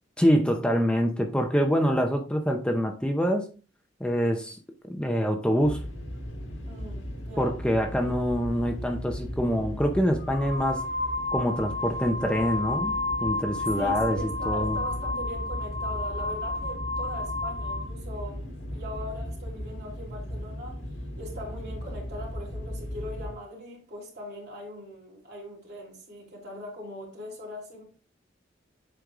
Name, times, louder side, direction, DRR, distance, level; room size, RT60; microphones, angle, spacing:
voice 1, 0.2-3.4 4.0-4.6 4.8-5.8 7.4-10.9 11.3-14.2 14.5-14.8, equal, 5° left, 0.6 m, -25 dB
sound 1, 5.6-23.3, equal, 90° left, 1.4 m, -37 dB
voice 2, 6.6-7.6 8.0-8.1 13.8-20.8 21.2-27.8, equal, 60° right, 3.2 m, -40 dB
sound 2, 9.2-9.4 10.2-17.9, left 2 dB, 70° left, 2.4 m, -31 dB
7.8 x 5.2 x 2.5 m
head